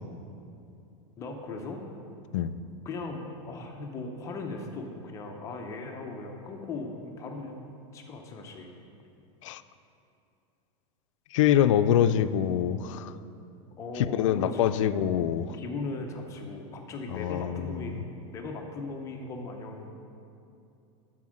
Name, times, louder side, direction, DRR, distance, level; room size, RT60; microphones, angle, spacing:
voice 1, 1.2-1.8 2.8-7.5 7.9-8.7 13.8-15.2 15.5-18.0 18.3-19.9, left 3 dB, 20° left, 2 dB, 0.6 m, -38 dB
voice 2, 11.3-13.1 14.2-15.5 17.1-17.9, left 10 dB, 75° left, 12 dB, 0.4 m, -25 dB
9.7 x 4.4 x 6.2 m, 2.7 s
supercardioid pair, 170°, 16 cm